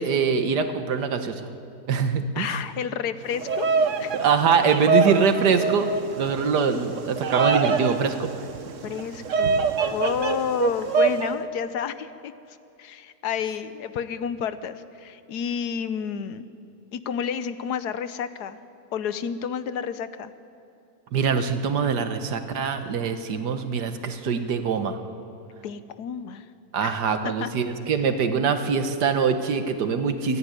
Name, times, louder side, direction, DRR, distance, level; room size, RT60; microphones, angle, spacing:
voice 1, 0.0-1.5 1.9-2.6 4.1-8.3 21.1-25.0 26.7-30.4, right 6 dB, 85° right, 8 dB, 1.8 m, -23 dB
voice 2, 2.3-3.7 4.0-4.2 8.8-16.5 16.9-18.6 18.9-20.3 25.6-26.5 26.8-27.0 27.2-27.5, left 7 dB, 80° left, 13 dB, 1.4 m, -30 dB
Bird vocalization bird call bird song, 3.3-11.3, right 4 dB, 55° right, 1.2 m, -25 dB
27.0 x 10.5 x 9.8 m, 2.6 s
omnidirectional pair, 1.7 m